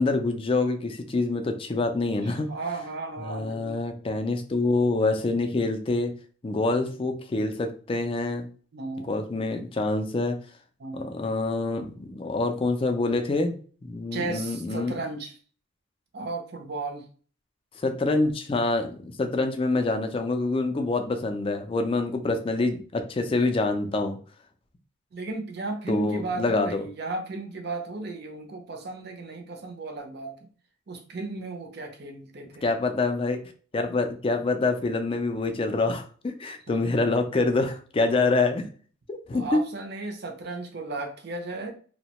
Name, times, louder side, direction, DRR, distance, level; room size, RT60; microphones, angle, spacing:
voice 1, 0.0-2.5 3.2-6.1 6.4-8.5 9.0-10.4 10.9-13.5 13.8-15.0 17.8-24.2 25.9-26.8 32.6-33.4 33.7-38.7 39.1-39.4, left 3 dB, 25° left, 5 dB, 0.3 m, -26 dB
voice 2, 2.2-3.8 6.5-6.9 8.7-9.3 10.8-11.1 14.1-15.4 16.1-17.1 25.1-30.5 30.9-32.6 36.7-36.8 39.3-41.7, right 3 dB, 50° right, 4 dB, 0.6 m, -35 dB
2.8 x 2.1 x 2.8 m, 0.41 s
head